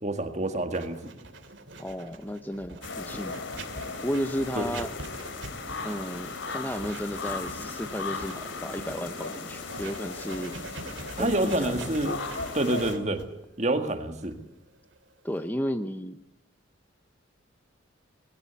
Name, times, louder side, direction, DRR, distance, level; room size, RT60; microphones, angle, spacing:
voice 1, 0.0-1.0 4.6-4.7 11.2-12.2 12.5-13.3 13.6-14.4, right 1 dB, 35° right, 7 dB, 2.0 m, -27 dB
Writing, 0.7-15.5, right 2 dB, 70° right, 2.6 m, -44 dB
voice 2, 1.8-3.4 4.0-4.9 5.8-10.6 11.2-11.9 15.2-16.2, equal, 10° left, 10 dB, 0.7 m, -33 dB
sound 1, 2.8-12.9, left 4 dB, 75° left, 3.0 m, -37 dB
20.5 x 17.0 x 8.2 m, 0.92 s
head